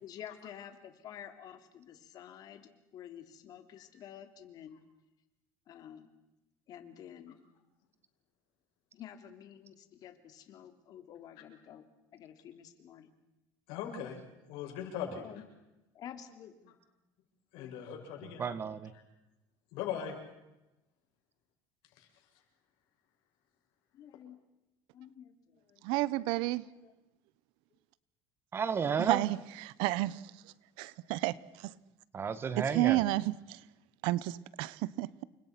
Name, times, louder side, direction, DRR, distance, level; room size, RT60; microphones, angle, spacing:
voice 1, 0.0-4.8 5.7-6.1 6.7-7.4 8.9-11.8 12.1-13.1 15.1-15.4 15.9-16.7 17.6-17.8 23.9-24.4 24.9-25.8 26.6-26.9 27.7-27.8, left 9 dB, 50° left, 3.2 m, -50 dB
voice 2, 13.7-14.2 14.5-15.2 17.5-18.4 19.7-20.2 22.0-22.1, left 8 dB, 75° left, 7.7 m, -39 dB
voice 3, 18.4-18.9 28.5-29.2 32.1-33.0, right 6 dB, 25° right, 1.5 m, -32 dB
voice 4, 25.8-26.6 29.0-30.2 30.8-31.7 32.6-33.6 34.0-35.1, right 17 dB, 75° right, 1.0 m, -31 dB
29.5 x 25.0 x 6.1 m
cardioid pair, 140°, 9 cm